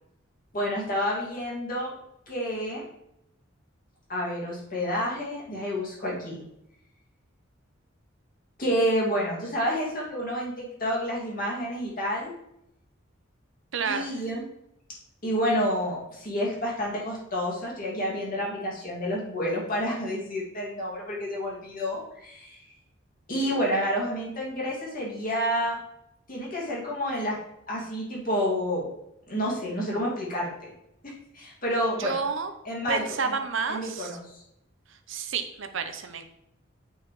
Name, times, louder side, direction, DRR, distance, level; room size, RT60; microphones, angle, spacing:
voice 1, 0.5-1.9 2.3-2.8 4.1-6.4 8.6-12.3 13.8-14.4 15.2-22.6 23.3-25.8 26.3-27.4 27.7-28.9 29.3-30.7 31.0-32.2 32.6-33.4 33.7-34.4, equal, 45° left, -4 dB, 2.1 m, -29 dB
voice 2, 13.7-14.1 32.0-32.5 32.9-34.1 35.1-36.2, right 5 dB, 70° right, 8 dB, 0.7 m, -30 dB
7.9 x 4.8 x 3.1 m, 0.80 s
head